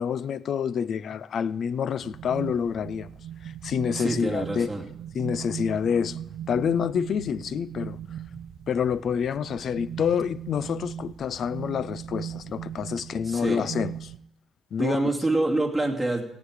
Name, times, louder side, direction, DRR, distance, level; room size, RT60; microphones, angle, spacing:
voice 1, 0.0-3.1 3.4-4.7 5.1-6.2 6.5-8.0 8.7-14.1 14.7-15.0, left 7 dB, 60° left, 0.5 m, -27 dB
sound 1, 2.0-14.2, right 9 dB, 70° right, 0.8 m, -39 dB
voice 2, 3.9-4.8 13.2-13.7 14.8-16.2, right 2 dB, 5° right, 2.6 m, -26 dB
17.5 x 8.7 x 4.9 m
cardioid pair, 90°, 0 cm